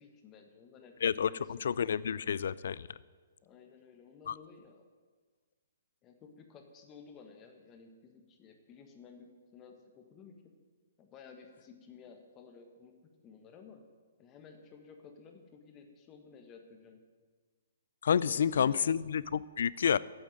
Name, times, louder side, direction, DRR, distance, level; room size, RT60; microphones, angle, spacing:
voice 1, 0.0-2.2 3.4-4.8 6.0-10.3 11.0-12.9 13.2-13.8 14.2-17.0 18.2-18.8, left 6 dB, 25° left, 4 dB, 1.5 m, -54 dB
voice 2, 1.6-2.9 4.3-4.4 18.0-20.0, left 7 dB, 70° left, 20 dB, 0.3 m, -29 dB
8.9 x 7.1 x 8.9 m, 1.5 s
hypercardioid pair, 140°, 0 cm